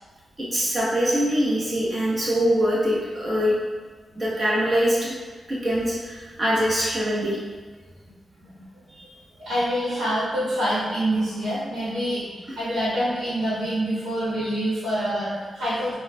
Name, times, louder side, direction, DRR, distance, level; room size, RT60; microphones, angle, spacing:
voice 1, 0.4-3.5 4.1-5.1 5.5-7.4 8.9-9.1 12.5-12.6, equal, 40° right, -6 dB, 1.1 m, -23 dB
voice 2, 9.4-15.9, equal, 65° right, -11 dB, 1.4 m, -26 dB
4.4 x 2.3 x 2.3 m, 1.4 s
supercardioid pair, 40°, 0 cm